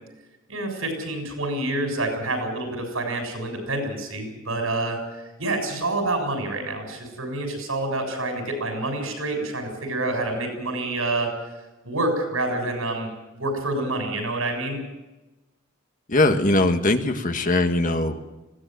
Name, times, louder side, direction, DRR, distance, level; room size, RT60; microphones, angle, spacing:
voice 1, 0.5-5.0 5.4-11.3 11.8-13.1 13.4-14.8, right 2 dB, 90° right, 4 dB, 7.2 m, -27 dB
voice 2, 16.1-18.2, left 2 dB, 40° left, 7 dB, 1.6 m, -21 dB
20.5 x 17.0 x 9.3 m, 1.1 s
head